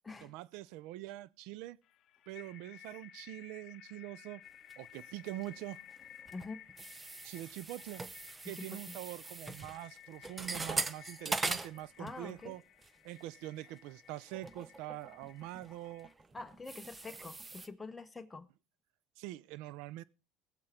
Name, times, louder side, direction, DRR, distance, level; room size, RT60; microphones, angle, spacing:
voice 1, 0.2-1.8 2.3-4.4 4.8-5.8 7.2-8.0 8.4-12.6 13.0-16.1 19.2-20.0, right 15 dB, 75° right, 0.6 m, -44 dB
sound 1, 1.8-16.1, left 10 dB, 50° left, 0.8 m, -57 dB
sound 2, 4.7-5.6 5.9-12.5 12.8-13.1 13.7-13.8 14.3-17.7, right 3 dB, 20° right, 0.8 m, -41 dB
voice 2, 6.3-6.6 8.4-9.0 12.0-12.5 16.3-18.5, left 3 dB, 15° left, 1.4 m, -46 dB
21.0 x 7.4 x 3.9 m
supercardioid pair, 110°, 0 cm